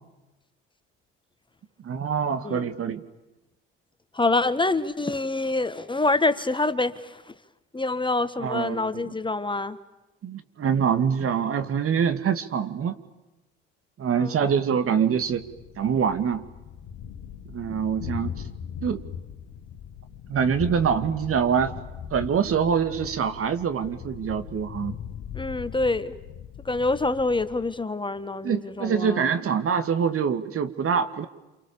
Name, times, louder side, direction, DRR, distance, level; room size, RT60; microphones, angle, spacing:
voice 1, 1.8-3.1 8.4-9.1 10.2-12.9 14.0-15.4 15.8-16.4 17.5-18.4 18.8-19.0 20.3-21.8 22.1-25.0 28.4-31.3, right 7 dB, 45° right, 11 dB, 2.3 m, -25 dB
voice 2, 4.1-7.2 7.7-9.8 14.1-14.4 25.3-26.1 26.6-29.3, left 2 dB, 15° left, 11 dB, 1.6 m, -26 dB
Thunder, 15.3-27.8, left 8 dB, 65° left, 1.8 m, -39 dB
29.5 x 28.0 x 7.1 m, 1.0 s
hypercardioid pair, 60°, 31 cm